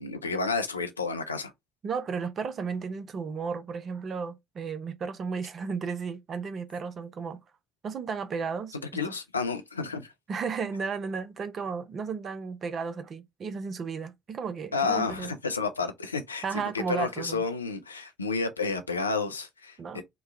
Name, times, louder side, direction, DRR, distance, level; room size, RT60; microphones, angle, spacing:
voice 1, 0.0-1.5 8.9-10.1 14.7-20.0, left 4 dB, 85° left, 0.4 m, -31 dB
voice 2, 1.8-7.4 7.8-8.8 9.1-9.2 10.3-15.3 16.4-17.4 19.8-20.0, right 5 dB, 45° right, 0.6 m, -34 dB
3.0 x 2.2 x 3.7 m
figure-of-eight pair, 50°, 0 cm